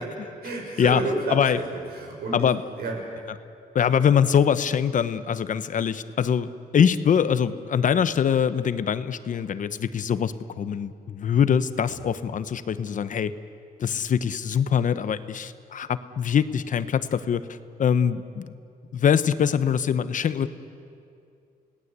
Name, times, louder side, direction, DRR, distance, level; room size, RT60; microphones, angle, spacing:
voice 1, 0.4-2.5 2.8-3.0, right 2 dB, 85° right, 0 dB, 6.1 m, -30 dB
voice 2, 1.3-1.6 2.3-2.6 3.7-6.5 6.7-13.3 13.8-17.4 17.8-18.5 18.9-20.5, left 8 dB, 55° left, 13 dB, 0.9 m, -23 dB
30.0 x 18.0 x 8.2 m, 2.4 s
cardioid pair, 125°, 16 cm